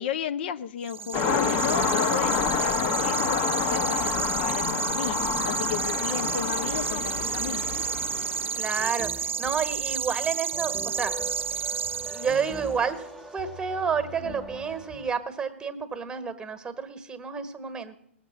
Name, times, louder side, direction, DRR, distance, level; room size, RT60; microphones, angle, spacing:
voice 1, 0.0-7.6 14.2-14.4, left 8 dB, 55° left, 12 dB, 0.6 m, -34 dB
sound 1, 0.8-12.7, right 7 dB, 75° right, 0.5 m, -31 dB
sound 2, 1.1-8.8, left 6 dB, 35° left, 1.1 m, -28 dB
sound 3, 8.1-15.1, right 1 dB, 5° left, 1.1 m, -42 dB
voice 2, 8.5-11.2 11.5-11.6 12.1-18.0, right 6 dB, 10° right, 9 dB, 1.4 m, -30 dB
19.0 x 7.3 x 7.3 m, 0.72 s
figure-of-eight pair, 110°, 7 cm